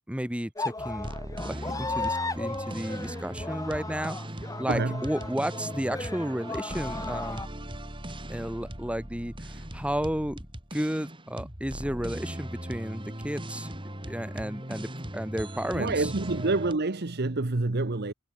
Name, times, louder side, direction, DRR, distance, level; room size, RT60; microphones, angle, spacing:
voice 1, 0.1-1.1 1.4-4.2 4.6-7.4 8.3-10.4 10.7-13.7 14.0-16.1, equal, 5° right, 2.2 m, -33 dB
sound 1, 0.6-7.5, left 3 dB, 15° left, 2.4 m, -35 dB
sound 2, 0.8-16.7, right 1 dB, 25° right, 4.2 m, -39 dB
voice 2, 4.7-5.0 15.7-18.1, right 2 dB, 50° right, 1.0 m, -27 dB
head